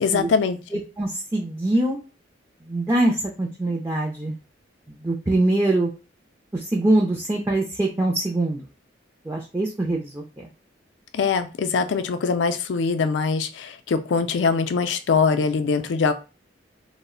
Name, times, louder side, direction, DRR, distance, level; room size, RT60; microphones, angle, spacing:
voice 1, 0.0-0.8 11.1-16.1, left 5 dB, 70° left, 10 dB, 0.4 m, -23 dB
voice 2, 0.7-2.0 2.6-4.4 4.9-5.9 6.5-8.7 9.2-10.5, right 1 dB, 15° right, -2 dB, 0.4 m, -23 dB
2.4 x 2.1 x 3.7 m, 0.32 s
head